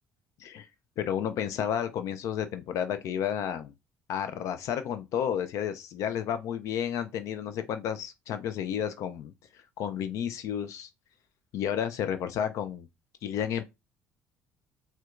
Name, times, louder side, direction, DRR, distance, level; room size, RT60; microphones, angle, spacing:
voice 1, 1.0-3.7 4.1-10.9 11.5-12.9 13.2-13.6, left 9 dB, 65° left, 0.4 m, -31 dB
4.3 x 2.2 x 2.4 m
supercardioid pair, 90°, 6 cm